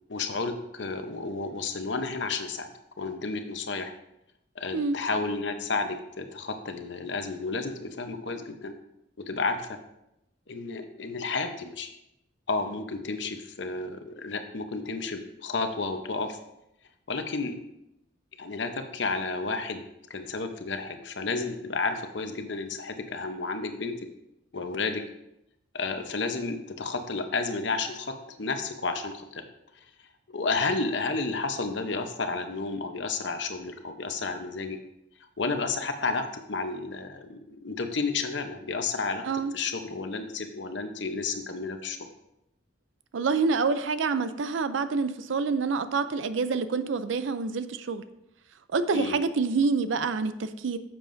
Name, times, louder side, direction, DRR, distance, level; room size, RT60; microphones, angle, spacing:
voice 1, 0.1-2.7 3.0-3.9 4.6-8.7 9.2-9.8 10.5-11.9 12.5-16.4 17.1-17.6 18.4-19.8 20.1-23.9 24.5-25.0 25.7-29.4 30.3-34.8 35.4-39.2 39.5-42.0 48.9-49.2, left 3 dB, 70° left, 7 dB, 0.8 m, -31 dB
voice 2, 43.1-48.0 48.7-50.8, right 4 dB, 85° right, 12 dB, 0.5 m, -27 dB
10.0 x 7.4 x 2.6 m, 0.84 s
head